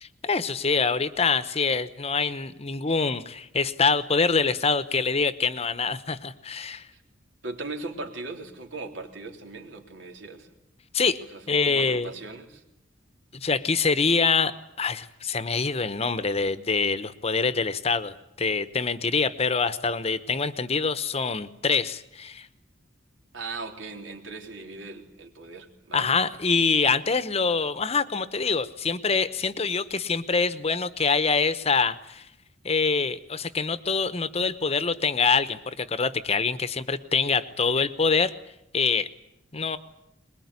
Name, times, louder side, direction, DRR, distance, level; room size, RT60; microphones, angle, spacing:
voice 1, 0.0-6.9 10.9-11.2 11.5-12.1 13.3-22.5 25.9-32.3 32.6-38.3 38.7-39.1 39.5-39.8, left 4 dB, 35° left, 13 dB, 0.9 m, -25 dB
voice 2, 7.4-10.5 11.3-12.6 23.3-26.1, right 3 dB, 80° right, 3 dB, 3.5 m, -38 dB
22.5 x 21.0 x 9.7 m, 0.84 s
head